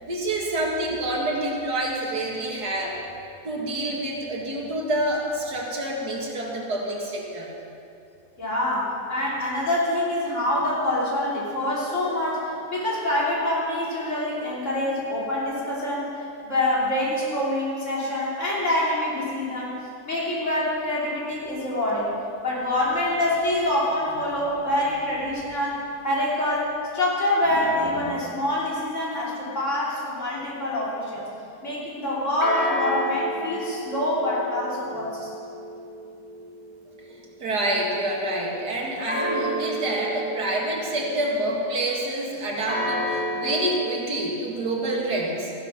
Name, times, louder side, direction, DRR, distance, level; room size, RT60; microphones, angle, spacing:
voice 1, 0.0-3.0 3.4-7.5 33.4-33.5 37.1-45.5, right 1 dB, 75° right, -2 dB, 2.6 m, -27 dB
voice 2, 8.4-16.1 16.4-19.8 20.1-22.1 22.4-31.3 31.6-35.3, left 1 dB, 45° left, -6 dB, 3.5 m, -26 dB
sound 1, 32.4-37.3 39.1-41.4 42.7-44.1, equal, 20° left, 1.6 m, -31 dB
15.0 x 11.5 x 5.8 m, 2.6 s
omnidirectional pair, 1.8 m